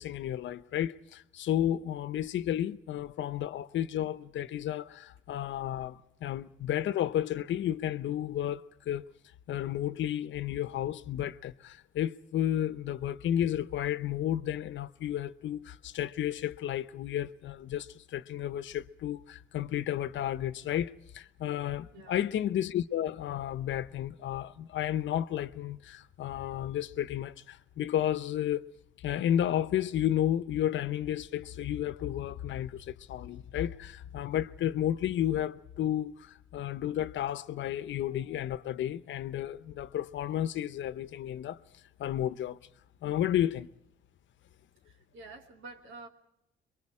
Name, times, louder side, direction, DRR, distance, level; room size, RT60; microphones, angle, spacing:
voice 1, 0.0-9.1 9.5-28.7 29.0-41.6 42.0-42.6 43.0-43.7, left 11 dB, 70° left, 0.9 m, -32 dB
voice 2, 21.9-22.2 44.8-46.1, right 3 dB, 80° right, 2.9 m, -48 dB
27.0 x 23.5 x 4.9 m
cardioid pair, 90°, 20 cm